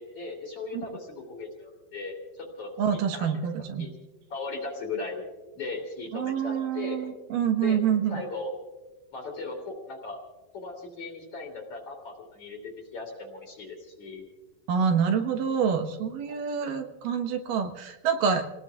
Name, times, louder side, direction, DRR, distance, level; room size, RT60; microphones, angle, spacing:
voice 1, 0.0-3.3 3.6-3.9 4.3-5.2 5.6-7.0 7.6-7.8 8.1-8.5 9.1-10.2 10.5-14.3 16.4-16.5, left 3 dB, 45° left, 1 dB, 3.4 m, -38 dB
voice 2, 2.8-3.9 6.1-8.2 14.7-18.5, right 7 dB, 80° right, 5 dB, 2.8 m, -27 dB
29.0 x 19.0 x 2.4 m, 1.1 s
omnidirectional pair, 3.9 m